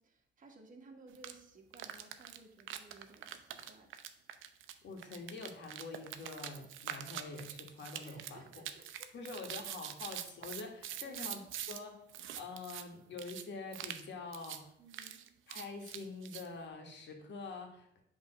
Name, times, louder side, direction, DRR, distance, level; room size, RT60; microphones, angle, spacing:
voice 1, 0.0-3.9 8.0-9.1 10.0-10.1 11.0-11.3 14.8-15.2, right 3 dB, 40° right, 2 dB, 1.6 m, -58 dB
sound 1, 1.1-1.3 1.7-11.8 12.1-12.8 13.2-13.4 13.7-14.0 14.3-14.6 14.9-16.5, right 10 dB, 80° right, 0.6 m, -44 dB
voice 2, 4.8-8.5 9.1-12.0 12.4-14.7 15.5-18.0, left 3 dB, 65° left, 3 dB, 1.8 m, -46 dB
8.0 x 3.6 x 6.0 m, 0.77 s
cardioid pair, 90°, 20 cm